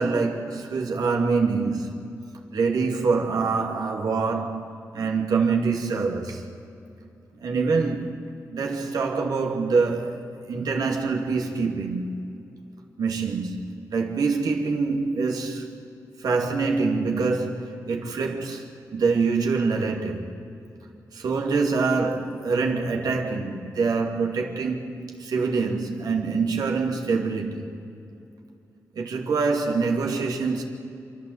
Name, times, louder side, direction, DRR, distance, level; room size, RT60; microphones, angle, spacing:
voice 1, 0.0-2.0 2.5-6.4 7.4-8.2 8.5-12.3 13.0-15.7 16.2-20.3 21.1-27.7 28.9-30.6, right 4 dB, 80° right, 2.6 m, -25 dB
28.0 x 12.5 x 8.1 m
cardioid pair, 80°, 7 cm